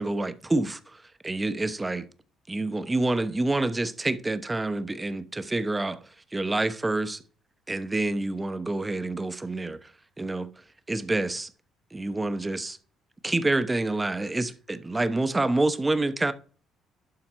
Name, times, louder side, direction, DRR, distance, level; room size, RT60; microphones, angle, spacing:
voice 1, 0.0-2.1 2.5-6.0 6.3-7.2 7.7-9.9 10.2-10.5 10.9-11.5 11.9-12.8 13.2-16.3, right 2 dB, 20° right, 1.0 m, -27 dB
11.5 x 4.2 x 4.6 m
supercardioid pair, 75°, 0 cm